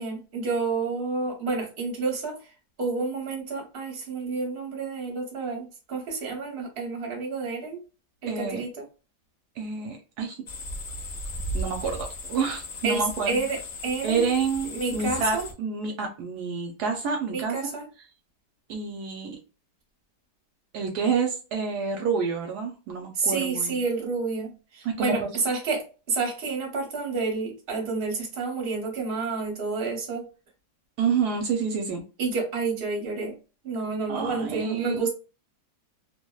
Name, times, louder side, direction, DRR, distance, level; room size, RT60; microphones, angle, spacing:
voice 1, 0.0-2.4 2.8-7.8 8.2-8.8 12.8-14.3 14.6-15.5 17.3-17.9 23.1-30.3 32.2-33.4 33.6-35.1, right 4 dB, 45° right, 1.0 m, -29 dB
voice 2, 8.3-8.6 9.6-10.4 11.5-13.4 14.0-17.8 18.7-19.4 20.7-23.8 24.8-25.3 31.0-32.0 34.1-35.0, right 5 dB, 75° right, 1.0 m, -28 dB
sound 1, 10.5-15.5, left 1 dB, 85° left, 0.5 m, -36 dB
2.8 x 2.0 x 2.2 m
omnidirectional pair, 1.8 m